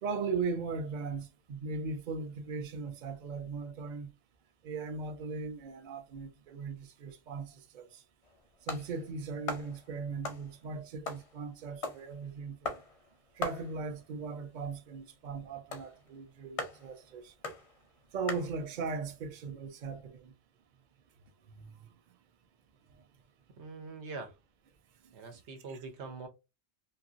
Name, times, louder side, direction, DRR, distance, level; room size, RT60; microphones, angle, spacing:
voice 1, 0.0-4.1 4.6-8.0 8.6-12.8 13.4-17.3 18.1-20.3 21.5-21.9 25.7-25.8, right 4 dB, 55° right, 0.6 m, -38 dB
sound 1, 8.2-18.9, left 3 dB, 45° left, 0.5 m, -42 dB
voice 2, 23.6-24.3 25.1-26.3, right 4 dB, 85° right, 1.1 m, -43 dB
2.8 x 2.5 x 2.5 m
omnidirectional pair, 1.1 m